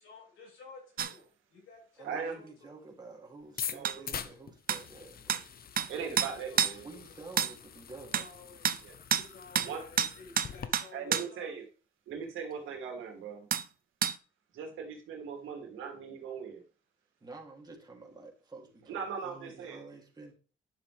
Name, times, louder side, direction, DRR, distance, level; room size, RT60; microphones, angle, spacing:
voice 1, 0.0-2.7 6.5-6.6 6.9-7.0 8.1-8.8 9.1-11.5, left 4 dB, 85° left, 5.7 m, -53 dB
sound 1, 1.0-1.1 3.8-4.0 4.7-4.8 5.3-5.4 5.8-5.9 6.2-6.8 7.4-7.5 8.1-8.3 8.6-8.8 9.1-9.3 9.6-9.7 10.0-11.3 13.5-13.7 14.0-14.2, right 9 dB, 50° right, 0.6 m, -29 dB
voice 2, 2.0-5.4 6.8-8.3 17.2-20.3, right 3 dB, 20° right, 2.9 m, -49 dB
sound 2, 3.4-10.7, left 8 dB, 50° left, 0.9 m, -44 dB
voice 3, 3.7-4.0 5.9-6.9 8.8-9.0 9.6-9.8 10.9-11.6 12.1-13.5 14.5-16.6 18.9-19.8, right 6 dB, 85° right, 2.7 m, -39 dB
10.5 x 6.9 x 3.4 m
cardioid pair, 90°, 20 cm